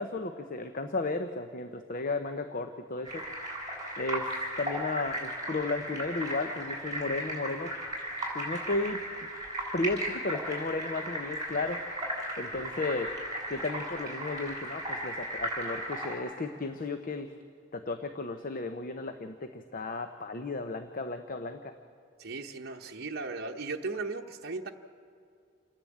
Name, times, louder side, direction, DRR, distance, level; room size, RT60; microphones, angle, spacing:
voice 1, 0.0-3.2 4.0-7.7 8.3-9.0 9.7-11.8 12.4-13.1 13.5-17.3 17.7-21.7, left 3 dB, 45° left, 7 dB, 0.8 m, -34 dB
sound 1, 3.0-16.2, right 1 dB, 20° right, 6.9 m, -36 dB
voice 2, 22.2-24.7, right 3 dB, 55° right, 2 dB, 0.9 m, -37 dB
28.5 x 10.5 x 8.6 m, 2.3 s
head